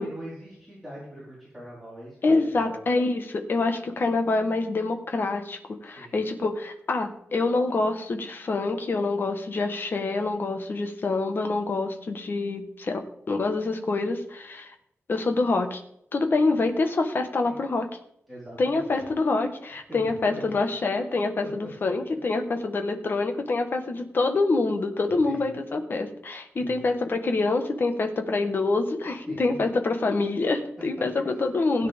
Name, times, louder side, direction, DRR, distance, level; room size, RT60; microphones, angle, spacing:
voice 1, 0.0-2.8 5.9-6.2 17.4-17.6 18.3-19.0 19.9-20.6 21.9-22.0 25.2-25.6 26.6-26.8 29.3-29.6 31.3-31.4 31.8-31.9, right 1 dB, ahead, -9 dB, 4.5 m, -42 dB
voice 2, 2.2-13.0 13.3-14.7 15.1-15.8 16.1-17.9 18.6-31.9, left 3 dB, 50° left, 5 dB, 1.4 m, -26 dB
16.5 x 9.6 x 3.6 m, 0.74 s
wide cardioid pair, 155°, 5 cm